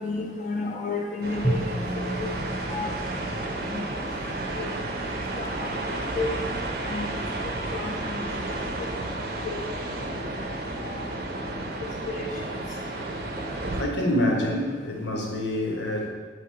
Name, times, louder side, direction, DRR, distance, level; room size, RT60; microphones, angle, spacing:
voice 1, 0.0-1.7 2.1-2.4 2.7-3.1 3.4-4.0 4.6-4.7 5.3-6.3 6.8-7.2 7.7-8.6 9.4-9.7 10.8-11.0 12.1-12.3, left 3 dB, 45° left, 0 dB, 0.3 m, -33 dB
sound 1, 1.2-13.8, right 2 dB, 60° right, 0.5 m, -32 dB
Drum, 1.4-4.4, right 1 dB, 15° left, 0.8 m, -32 dB
voice 2, 13.8-16.1, left 1 dB, 85° left, 1 dB, 0.8 m, -26 dB
3.8 x 3.1 x 4.5 m, 1.4 s
head